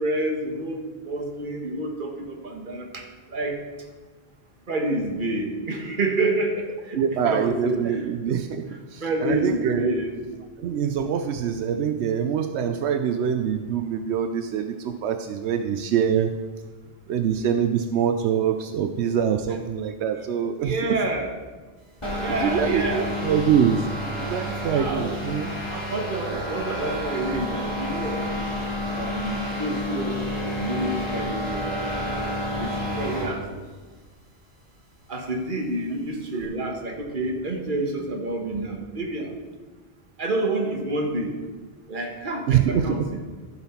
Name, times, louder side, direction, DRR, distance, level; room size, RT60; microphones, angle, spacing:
voice 1, 0.0-3.6 4.7-8.0 8.7-10.1 20.6-21.3 22.2-23.4 24.7-25.2 25.6-28.5 28.9-32.2 32.6-33.4 35.1-39.3 40.2-41.3 41.9-43.2, right 2 dB, 50° right, 2 dB, 1.4 m, -28 dB
voice 2, 7.0-9.9 10.6-16.4 17.1-21.0 22.3-23.9 24.2-25.6 26.3-26.4 31.7-31.8 42.5-43.1, right 8 dB, 85° right, 8 dB, 0.9 m, -24 dB
sound 1, 22.0-33.4, left 1 dB, 25° left, 2.7 m, -30 dB
14.5 x 5.7 x 4.3 m, 1.3 s
omnidirectional pair, 1.1 m